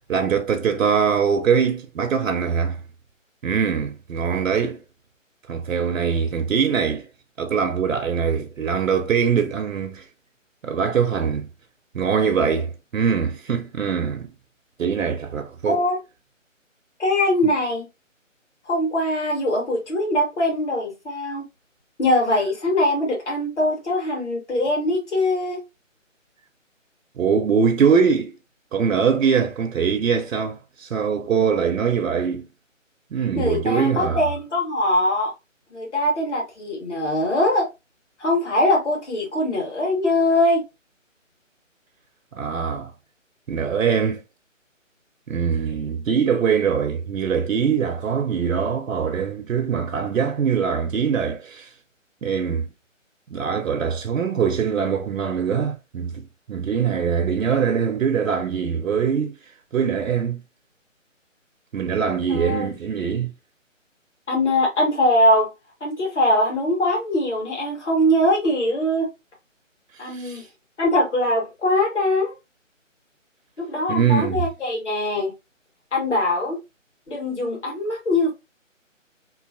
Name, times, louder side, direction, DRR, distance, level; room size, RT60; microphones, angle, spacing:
voice 1, 0.1-2.8 3.4-4.8 5.5-7.1 7.4-10.1 10.6-11.5 11.9-14.3 14.8-15.8 27.2-28.3 28.7-32.5 33.1-34.2 42.3-42.9 43.5-44.2 45.3-51.7 52.2-52.7 53.3-59.4 59.7-60.4 61.7-63.3 70.0-70.5 73.9-74.4, right 6 dB, 85° right, 0.6 m, -22 dB
voice 2, 15.6-16.0 17.0-17.8 18.7-21.4 22.0-25.6 33.4-35.3 35.7-37.7 38.2-40.6 62.3-62.7 64.3-65.5 65.8-69.1 70.0-70.4 70.8-72.3 73.6-75.3 75.9-76.6 77.1-78.3, left 1 dB, 60° left, 1.6 m, -22 dB
3.1 x 2.5 x 2.5 m
figure-of-eight pair, 155°, 39 cm